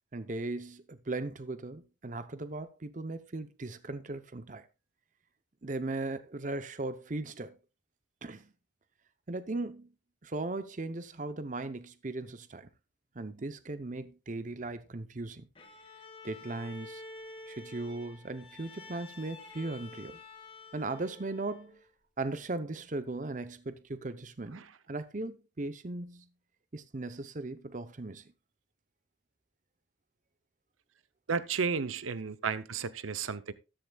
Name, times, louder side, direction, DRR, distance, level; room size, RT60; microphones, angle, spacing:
voice 1, 0.1-4.6 5.6-7.5 8.2-8.5 9.3-9.9 10.2-12.7 13.2-15.5 16.2-17.0 17.5-20.2 20.7-21.8 22.2-26.3 26.7-28.2, right 2 dB, 40° right, 0.7 m, -38 dB
Bowed string instrument, 15.5-21.8, left 3 dB, 25° left, 1.8 m, -49 dB
voice 2, 31.3-33.5, right 5 dB, 85° right, 0.7 m, -32 dB
13.5 x 11.5 x 2.3 m
head